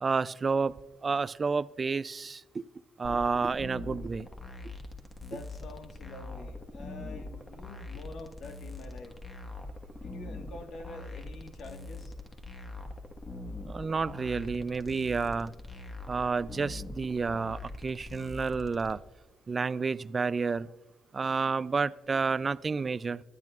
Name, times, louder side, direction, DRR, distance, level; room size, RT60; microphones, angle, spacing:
voice 1, 0.0-2.6 3.0-4.3 13.7-15.5 16.1-19.0 19.5-20.7 21.1-23.2, right 4 dB, 35° right, 16 dB, 0.3 m, -30 dB
sound 1, 3.0-18.9, left 2 dB, 20° left, 1.4 m, -43 dB
voice 2, 5.2-9.2 9.9-12.1, left 2 dB, 70° left, 4 dB, 1.4 m, -46 dB
24.5 x 10.5 x 2.4 m, 1.1 s
cardioid pair, 90°, 0 cm